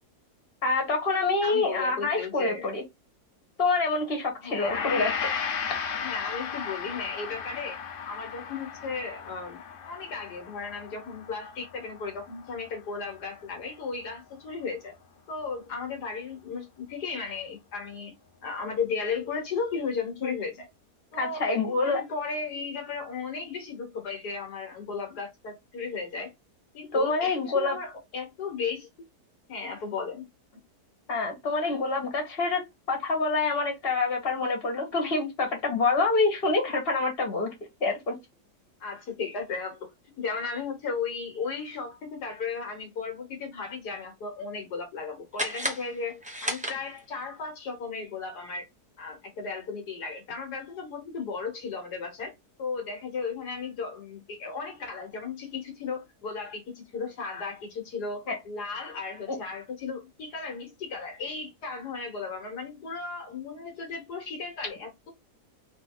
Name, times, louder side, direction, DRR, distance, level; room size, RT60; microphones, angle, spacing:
voice 1, 0.6-2.8 3.6-5.1 20.2-20.3 21.1-22.0 26.9-27.8 31.1-32.6 32.9-37.5 37.8-38.2 58.3-58.4 59.3-59.4, left 3 dB, 35° left, 1.9 m, -26 dB
voice 2, 1.4-2.7 4.4-5.2 5.9-7.8 8.0-15.0 15.3-18.2 18.4-20.7 21.1-26.3 26.7-29.1 29.5-30.3 38.8-39.9 40.2-48.7 49.0-52.3 52.6-65.1, left 5 dB, 75° left, 1.9 m, -35 dB
Gong, 4.6-13.1 13.4-13.6, left 7 dB, 60° left, 0.6 m, -35 dB
sound 1, 45.3-47.3, equal, 10° right, 0.5 m, -34 dB
4.0 x 3.1 x 3.8 m
omnidirectional pair, 1.7 m